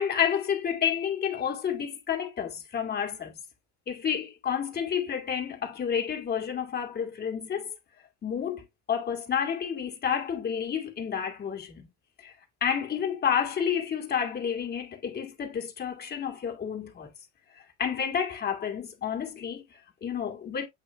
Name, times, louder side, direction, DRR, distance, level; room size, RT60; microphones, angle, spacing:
voice 1, 0.0-3.4 3.9-7.7 8.2-11.9 12.2-12.3 12.6-17.1 17.8-20.7, left 8 dB, 25° left, 2.1 m, -30 dB
8.3 x 3.2 x 3.5 m
cardioid pair, 145°, 36 cm